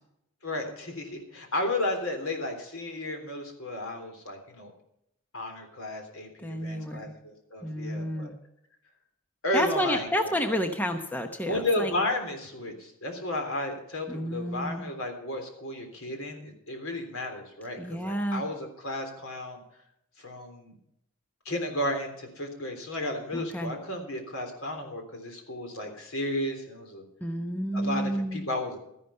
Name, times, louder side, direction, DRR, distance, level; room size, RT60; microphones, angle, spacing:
voice 1, 0.4-4.7 5.3-8.3 9.4-10.6 11.5-19.6 20.2-20.7 21.5-27.0 27.7-28.8, left 1 dB, 75° left, 4 dB, 3.5 m, -33 dB
voice 2, 6.4-7.1 7.6-8.3 9.5-11.9 14.1-14.9 17.8-18.4 23.3-23.7 27.2-28.4, equal, 10° left, 5 dB, 0.8 m, -30 dB
13.5 x 11.0 x 5.6 m, 0.78 s
head